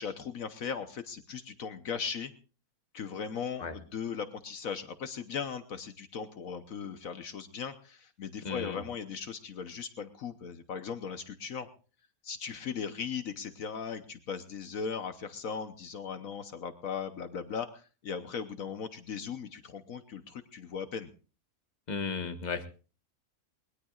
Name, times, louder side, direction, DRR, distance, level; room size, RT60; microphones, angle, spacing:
voice 1, 0.0-2.3 2.9-11.7 12.2-21.1, left 6 dB, 65° left, 10 dB, 1.3 m, -38 dB
voice 2, 8.4-8.8 21.9-22.7, left 5 dB, 30° left, 7 dB, 1.4 m, -34 dB
21.5 x 20.5 x 2.4 m, 0.37 s
omnidirectional pair, 1.5 m